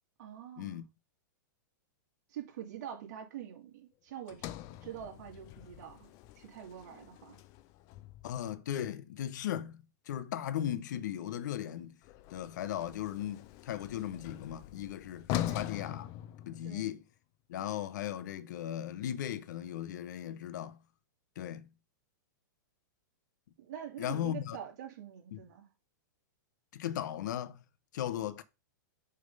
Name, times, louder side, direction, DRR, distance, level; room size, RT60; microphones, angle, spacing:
voice 1, 0.2-0.8 2.3-4.5 4.8-6.1 6.4-7.4 15.3-15.7 16.6-16.9 23.6-25.7, right 10 dB, 60° right, 2.2 m, -45 dB
Sliding door, 4.3-8.5 12.0-17.0, left 13 dB, 35° left, 0.5 m, -42 dB
voice 2, 8.2-12.0 12.3-15.3 15.5-16.1 16.5-17.0 17.5-20.8 21.4-21.7 24.0-24.6 25.3-25.4 26.7-27.6 27.9-28.4, left 11 dB, 65° left, 0.9 m, -37 dB
6.4 x 3.6 x 5.3 m
hypercardioid pair, 145°, 10 cm